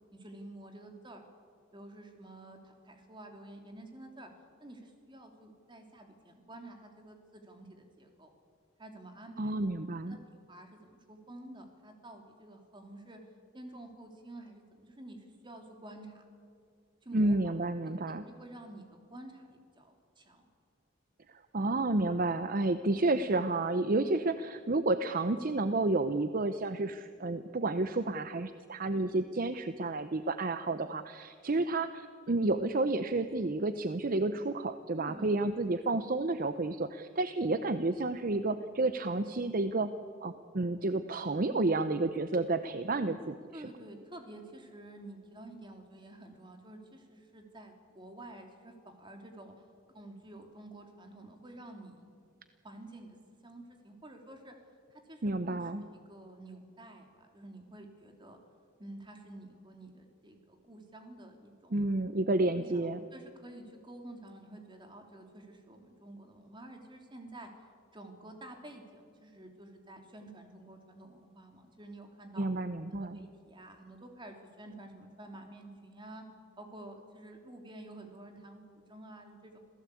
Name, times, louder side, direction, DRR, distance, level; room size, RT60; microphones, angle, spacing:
voice 1, 0.2-1.2 1.7-4.3 4.6-8.3 8.8-9.5 10.1-13.2 13.5-16.2 17.0-17.5 18.1-20.5 34.9-35.5 43.5-49.5 49.9-52.0 52.6-53.2 53.4-54.5 54.9-58.4 58.8-61.9 62.5-67.5 67.9-72.5 72.9-76.2 76.6-79.6, right 1 dB, 25° right, 4 dB, 3.1 m, -50 dB
voice 2, 9.4-10.2 17.1-18.2 21.3-39.9 40.2-43.4 55.2-55.8 61.7-63.0 72.4-73.2, right 2 dB, 45° right, 11 dB, 0.7 m, -30 dB
27.0 x 16.5 x 8.4 m, 2.2 s
head